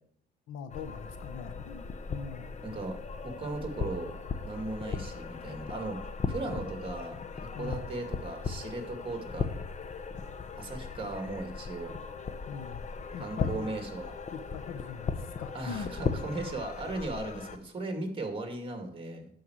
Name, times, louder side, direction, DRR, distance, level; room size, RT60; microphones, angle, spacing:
voice 1, 0.5-2.5 7.5-7.9 12.5-12.8 13.1-13.7 14.3-15.9, left 7 dB, 90° left, 9 dB, 1.2 m, -41 dB
sound 1, 0.7-17.6, left 5 dB, 35° left, 1.0 m, -37 dB
voice 2, 2.6-3.0 3.2-4.1 4.4-6.0 6.3-9.5 10.5-11.9 13.2-14.1 15.5-19.3, right 2 dB, 25° right, 4 dB, 2.4 m, -37 dB
11.5 x 4.7 x 8.0 m, 0.66 s
cardioid pair, 90°, 20 cm